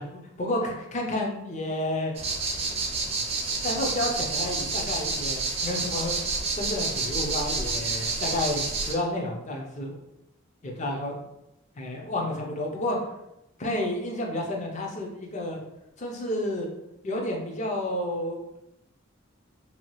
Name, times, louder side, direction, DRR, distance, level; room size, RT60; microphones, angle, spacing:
voice 1, 0.0-2.1 3.6-6.2 6.6-10.0 10.6-11.2 11.8-13.0 13.6-15.6 16.0-16.7 17.0-18.4, left 1 dB, 35° left, 0 dB, 0.5 m, -30 dB
sound 1, 2.2-8.9, right 3 dB, 30° right, 0.4 m, -29 dB
2.8 x 2.3 x 3.0 m, 0.86 s
head